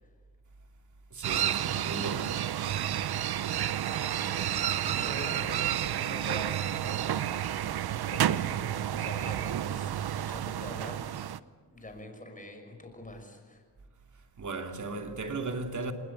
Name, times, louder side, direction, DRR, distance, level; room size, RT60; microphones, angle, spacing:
voice 1, 1.1-2.5 14.4-15.9, right 3 dB, 45° right, 2.7 m, -36 dB
sound 1, 1.2-11.4, right 11 dB, 65° right, 0.9 m, -30 dB
voice 2, 4.2-7.6 8.1-11.0 11.7-13.6, left 1 dB, 20° left, 6.0 m, -45 dB
27.0 x 19.5 x 8.4 m
cardioid pair, 90°, 41 cm